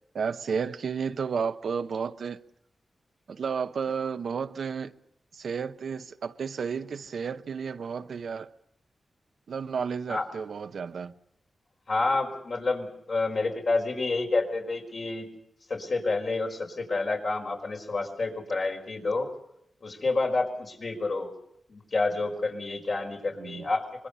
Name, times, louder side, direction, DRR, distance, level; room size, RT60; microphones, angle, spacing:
voice 1, 0.1-2.4 3.3-4.9 5.3-8.5 9.5-11.1 23.4-23.6, right 6 dB, 75° right, 0.9 m, -32 dB
voice 2, 11.9-15.3 15.7-19.3 19.8-21.3 21.7-24.1, left 3 dB, 60° left, 5.1 m, -29 dB
25.0 x 21.5 x 6.8 m
cardioid pair, 55°, 0 cm